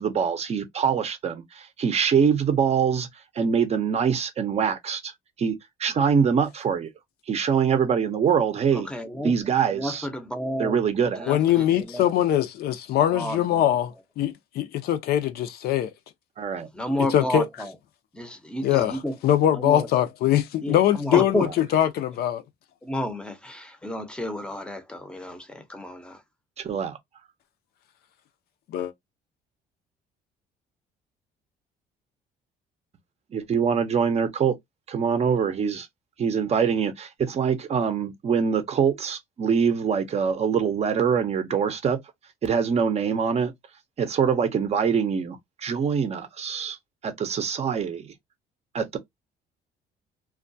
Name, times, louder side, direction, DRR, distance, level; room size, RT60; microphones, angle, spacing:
voice 1, 0.0-3.1 3.4-5.1 5.4-6.9 7.3-8.9 9.2-10.1 10.6-11.3 16.4-16.7 21.4-21.5 26.6-27.0 33.3-34.5 34.9-35.9 36.2-42.0 42.4-43.5 44.0-46.8 47.0-48.1 48.7-49.0, right 7 dB, 40° right, 0.5 m, -24 dB
voice 2, 8.7-9.3 9.7-10.8 11.2-12.1 13.1-13.6 16.7-17.7 18.1-19.1 19.5-19.9 20.6-21.5 22.8-26.2, left 1 dB, 5° left, 0.6 m, -31 dB
voice 3, 11.3-15.9 17.0-17.5 18.6-22.4 28.7-28.9, left 11 dB, 65° left, 0.5 m, -22 dB
2.2 x 2.2 x 2.6 m
cardioid pair, 110°, 17 cm